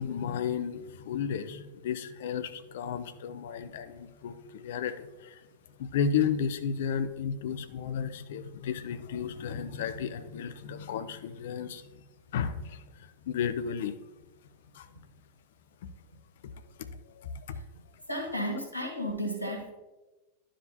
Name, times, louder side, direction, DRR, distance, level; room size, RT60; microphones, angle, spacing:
voice 1, 0.0-5.4 5.8-11.8 12.3-14.0 14.7-14.9 16.4-16.5 17.2-17.6, left 7 dB, 55° left, 10 dB, 0.5 m, -33 dB
voice 2, 18.1-19.7, equal, 90° right, -1 dB, 1.7 m, -33 dB
11.5 x 5.0 x 2.8 m, 1.1 s
figure-of-eight pair, 90°, 0 cm